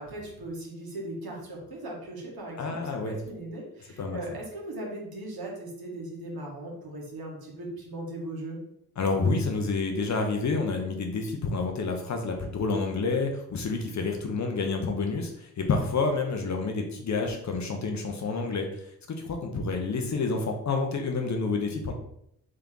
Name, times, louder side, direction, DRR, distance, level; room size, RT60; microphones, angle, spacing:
voice 1, 0.0-8.6, right 1 dB, 50° right, -1 dB, 1.8 m, -38 dB
voice 2, 2.6-3.2 4.0-4.2 9.0-18.7 19.2-21.9, left 4 dB, 40° left, 3 dB, 0.9 m, -29 dB
3.7 x 3.3 x 3.8 m, 0.72 s
hypercardioid pair, 40°, 45 cm